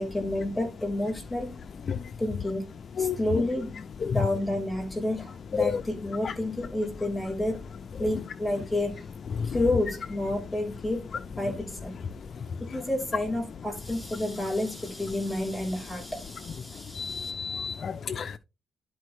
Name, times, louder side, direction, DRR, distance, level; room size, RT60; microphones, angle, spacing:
voice 1, 0.0-1.6 2.2-2.7 3.0-3.8 4.1-7.6 8.0-9.0 9.4-11.1 11.4-12.0 12.6-17.3, left 1 dB, 10° left, 3.4 m, -30 dB
voice 2, 17.0-18.4, left 6 dB, 45° left, 0.3 m, -32 dB
11.5 x 4.4 x 3.2 m
wide cardioid pair, 165°, 0 cm